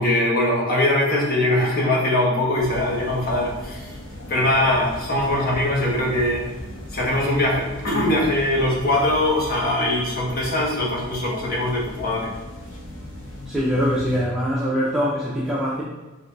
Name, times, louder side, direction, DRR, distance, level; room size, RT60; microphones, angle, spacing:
voice 1, 0.0-3.9 4.3-6.4 6.9-12.3, left 1 dB, 45° left, -3 dB, 1.2 m, -21 dB
sound 1, 2.5-14.3, left 1 dB, 65° left, 1.2 m, -38 dB
voice 2, 13.5-15.8, equal, ahead, -8 dB, 0.6 m, -23 dB
4.8 x 3.4 x 2.6 m, 1.2 s
head